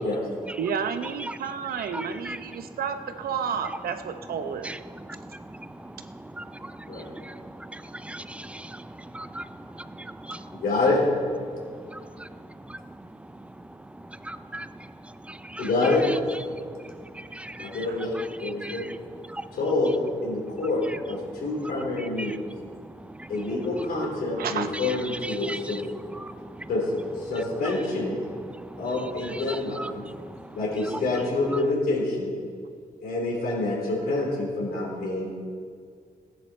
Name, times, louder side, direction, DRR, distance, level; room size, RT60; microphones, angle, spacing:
voice 1, 0.6-4.7 17.9-18.0 24.4-24.7, right 7 dB, 80° right, 9 dB, 0.8 m, -31 dB
voice 2, 1.9-2.4 4.5-10.6 11.4-16.2 16.5-17.9 18.1-19.6 20.3-20.6 20.9-21.0 21.2-23.9 24.2-24.5 24.7-26.7 27.3-27.8 28.3-31.0 31.5-31.6, right 1 dB, 10° right, 12 dB, 0.4 m, -40 dB
voice 3, 10.5-11.0 15.6-16.0 17.6-18.8 19.5-22.4 23.3-25.8 26.7-26.8 27.2-28.2 28.8-30.0 30.5-32.3 33.0-35.3, left 2 dB, 85° left, -2 dB, 3.9 m, -27 dB
16.0 x 9.8 x 4.4 m, 2.1 s
wide cardioid pair, 140°, 15 cm